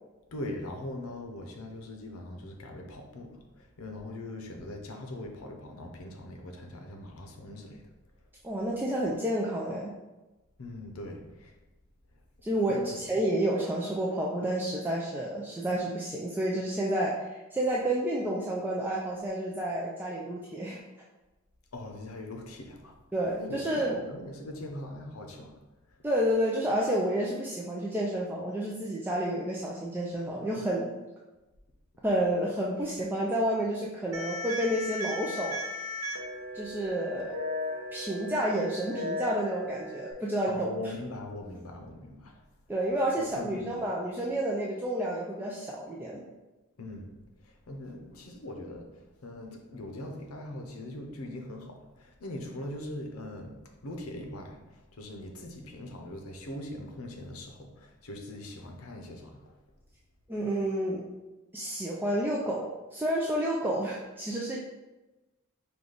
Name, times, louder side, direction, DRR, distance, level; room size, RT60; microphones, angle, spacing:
voice 1, 0.3-7.8 10.6-11.5 12.7-13.0 21.7-22.9 23.4-25.6 25.9-26.0 40.5-42.4 43.2-43.7 46.8-47.1 47.4-53.6 53.8-59.6, left 1 dB, 80° left, 3 dB, 0.7 m, -41 dB
voice 2, 8.4-9.9 12.4-20.8 23.1-24.0 26.0-30.9 32.0-35.6 36.5-37.3 37.9-40.7 42.7-46.2 60.3-61.0 61.5-64.6, right 1 dB, 10° right, -4 dB, 0.3 m, -30 dB
sound 1, 34.1-40.1, left 1 dB, 80° right, 0.7 m, -36 dB
4.9 x 2.3 x 3.8 m, 1.1 s
head